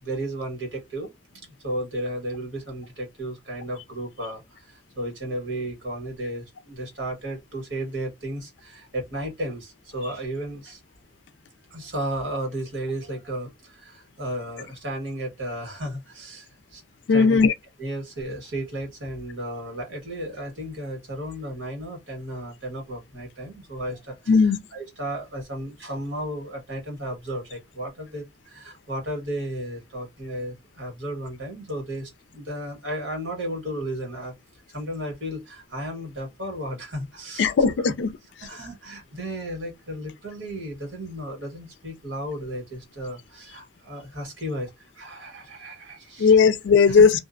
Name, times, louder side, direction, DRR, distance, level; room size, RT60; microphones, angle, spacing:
voice 1, 0.0-10.8 11.7-16.8 17.1-17.4 17.8-34.3 34.7-37.5 38.4-44.7 44.9-46.3 46.9-47.0, right 1 dB, 85° right, 1.4 m, -34 dB
voice 2, 17.1-17.5 24.3-24.6 37.4-38.1 46.2-47.1, left 5 dB, 70° left, 0.4 m, -17 dB
2.5 x 2.0 x 2.5 m
head